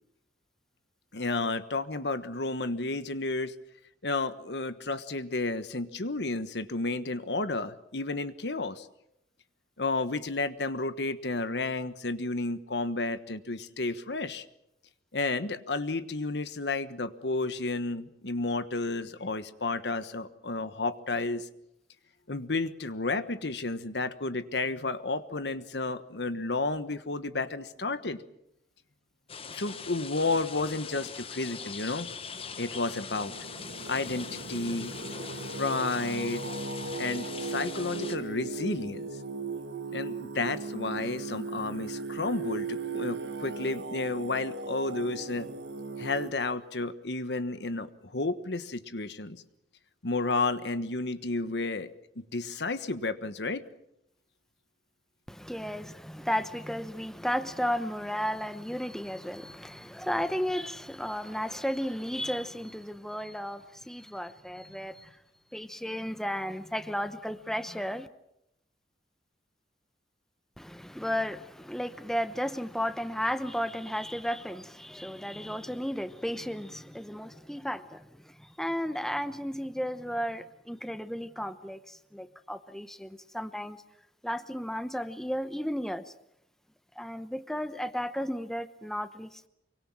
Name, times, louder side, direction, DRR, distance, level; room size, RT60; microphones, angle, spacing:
voice 1, 1.1-3.5 4.0-8.9 9.8-14.4 15.1-21.5 22.3-28.2 29.4-32.1 32.6-33.3 33.9-34.9 35.5-36.5 37.0-39.1 39.9-45.5 46.0-49.4 50.0-51.9 52.2-53.6, left 3 dB, 75° left, 1.3 m, -32 dB
sound 1, 29.3-38.2, left 6 dB, 35° left, 1.2 m, -42 dB
Singing, 32.5-46.3, right 4 dB, 85° right, 1.8 m, -37 dB
voice 2, 55.3-65.2 65.5-68.1 70.6-83.8 84.2-86.1 87.0-89.5, equal, 5° left, 0.9 m, -34 dB
24.5 x 24.0 x 7.3 m
head